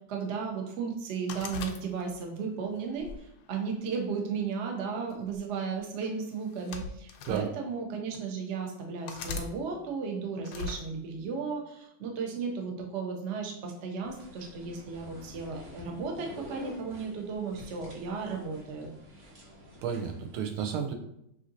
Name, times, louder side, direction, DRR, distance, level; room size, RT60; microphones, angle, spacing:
voice 1, 0.1-18.9, right 5 dB, 70° right, 1 dB, 0.6 m, -35 dB
sound 1, 1.3-2.4 3.0-4.1 5.1-5.4 6.4-7.4 8.1-8.2 9.1-9.5 10.4-10.8, left 4 dB, 75° left, 1.1 m, -39 dB
sound 2, 14.0-20.4, equal, 50° right, 1.0 m, -48 dB
voice 2, 19.8-20.9, right 7 dB, 90° right, 4 dB, 1.5 m, -32 dB
6.0 x 2.8 x 2.7 m, 0.77 s
omnidirectional pair, 2.3 m